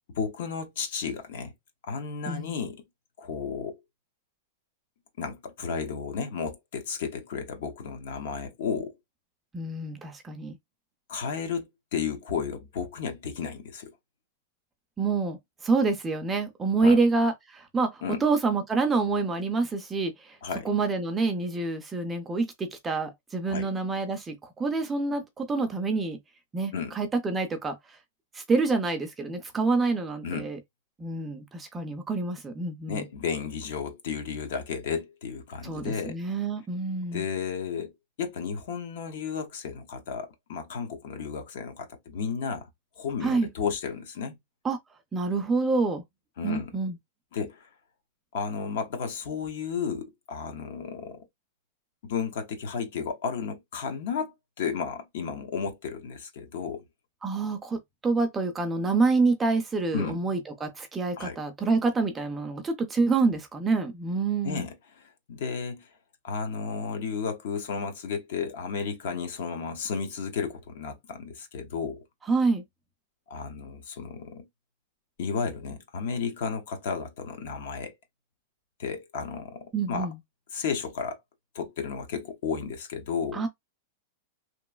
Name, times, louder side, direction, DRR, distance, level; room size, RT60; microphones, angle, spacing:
voice 1, 0.1-1.5 1.8-2.8 3.2-3.8 5.2-9.0 11.1-14.0 16.8-17.0 18.0-18.2 20.4-20.7 23.5-23.7 26.7-27.0 30.2-30.5 32.9-36.2 37.1-37.9 38.2-42.7 43.0-44.4 46.4-46.7 47.3-47.7 48.3-51.2 52.0-56.8 59.9-60.2 61.2-61.4 64.4-65.9 66.2-72.0 73.3-74.5 75.2-78.0 78.8-80.1 80.5-81.2 81.5-83.4, left 6 dB, 60° left, 0.8 m, -33 dB
voice 2, 9.5-10.6 15.0-20.4 20.6-26.2 26.5-27.8 28.3-30.6 31.0-33.0 35.6-37.2 43.2-43.5 44.6-44.8 45.1-46.0 46.4-47.0 57.2-64.7 72.3-72.6 79.7-80.1 83.3-83.5, right 3 dB, 10° right, 0.4 m, -27 dB
3.0 x 2.4 x 2.3 m
supercardioid pair, 170°, 0 cm